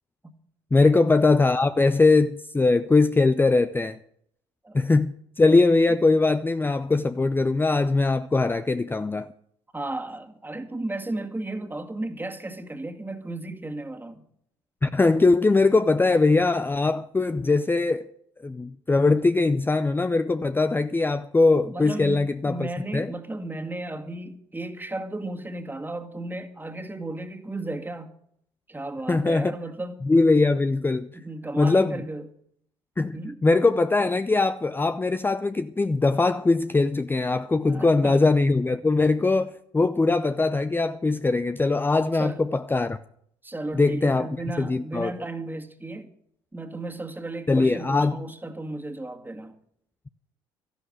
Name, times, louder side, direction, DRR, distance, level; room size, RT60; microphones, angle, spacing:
voice 1, 0.7-4.0 4.7-9.3 14.8-18.1 18.4-23.1 29.1-29.5 30.0-31.1 31.6-32.0 33.0-43.0 43.7-44.3 44.6-45.1 47.5-48.2, left 3 dB, 15° left, 0.6 m, -21 dB
voice 2, 9.7-14.2 21.7-28.1 28.7-30.0 31.1-32.3 33.1-33.4 37.6-38.2 42.1-42.4 43.4-46.1 46.5-49.6, right 2 dB, 15° right, 2.0 m, -34 dB
13.0 x 11.5 x 6.5 m
hypercardioid pair, 55°, 13 cm